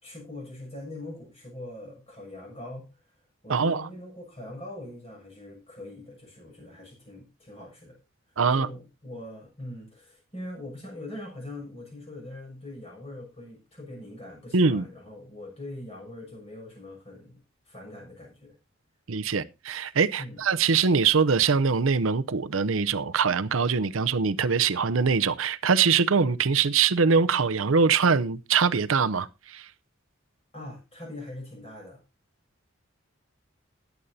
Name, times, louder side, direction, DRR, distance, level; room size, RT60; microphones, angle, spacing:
voice 1, 0.0-3.0 3.4-8.0 8.5-17.3 17.6-18.5 20.2-20.4 30.5-32.0, left 1 dB, 30° left, 6.5 m, -42 dB
voice 2, 3.5-3.9 8.4-8.7 14.5-14.9 19.1-29.7, right 5 dB, 90° right, 0.7 m, -23 dB
20.0 x 8.2 x 2.7 m
head